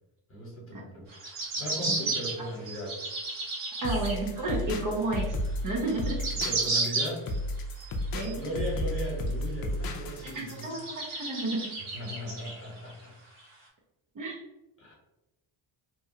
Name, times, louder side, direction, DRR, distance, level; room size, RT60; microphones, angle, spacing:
voice 1, 0.3-2.9 3.8-3.9 6.3-7.2 7.8-10.7 11.9-13.1 14.8-14.9, equal, 25° left, -3 dB, 1.1 m, -38 dB
sound 1, 1.1-4.2 4.7-4.8 5.6-5.7 5.8-7.4 7.8-8.7 9.3-9.4 9.8-9.9 10.5-12.9 13.4-13.5, right 3 dB, 80° right, 1.3 m, -33 dB
sound 2, 3.8-10.7, left 1 dB, 50° left, 0.5 m, -33 dB
voice 2, 3.8-6.2 8.1-8.4 10.2-11.7 14.1-14.4, right 2 dB, 40° right, -1 dB, 0.6 m, -32 dB
2.9 x 2.2 x 2.7 m, 0.98 s
cardioid pair, 125°, 50 cm